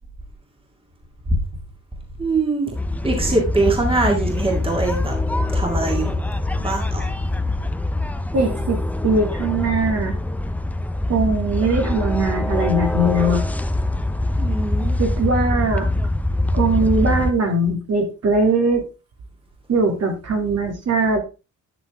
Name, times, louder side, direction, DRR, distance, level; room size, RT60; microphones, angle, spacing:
voice 1, 2.2-2.7 3.0-5.1 5.5-6.1 6.6-7.1 14.4-15.0, right 2 dB, 20° right, 1 dB, 2.2 m, -22 dB
sound 1, 2.7-17.3, left 2 dB, 5° left, 0.6 m, -23 dB
voice 2, 8.3-10.1 11.1-13.4 15.0-15.9 16.5-18.9 19.7-21.2, right 2 dB, 55° right, 2 dB, 2.9 m, -20 dB
11.5 x 6.6 x 3.5 m, 0.30 s
wide cardioid pair, 150°, 30 cm